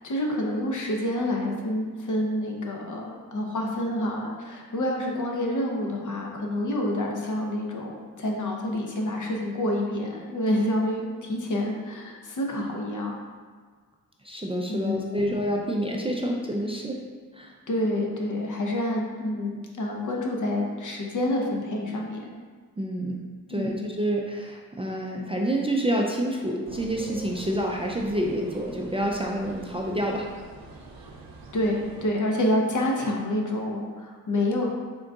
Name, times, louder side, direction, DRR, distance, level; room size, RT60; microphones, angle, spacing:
voice 1, 0.0-13.2 14.7-15.3 17.7-22.3 23.5-23.8 31.5-34.7, left 1 dB, 60° left, 0 dB, 0.7 m, -28 dB
voice 2, 14.2-17.0 17.3-17.5 22.8-23.2 23.5-30.3, right 1 dB, 15° right, -1 dB, 0.3 m, -28 dB
sound 1, 26.7-32.1, right 3 dB, 75° right, 0.5 m, -44 dB
3.7 x 3.6 x 2.3 m, 1.6 s
cardioid pair, 70°, 35 cm